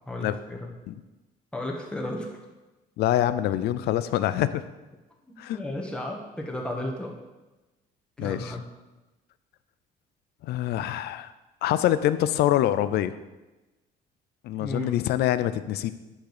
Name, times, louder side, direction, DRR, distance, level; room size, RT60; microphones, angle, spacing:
voice 1, 0.1-0.7 1.5-2.4 5.3-7.2 8.2-8.6 14.6-14.9, left 1 dB, 5° left, -1 dB, 1.6 m, -34 dB
voice 2, 3.0-4.6 5.4-5.6 8.2-8.5 10.4-11.3 11.6-13.1 14.4-15.9, left 12 dB, 75° left, 13 dB, 0.5 m, -25 dB
10.0 x 3.8 x 6.7 m, 1.1 s
cardioid pair, 110°, 17 cm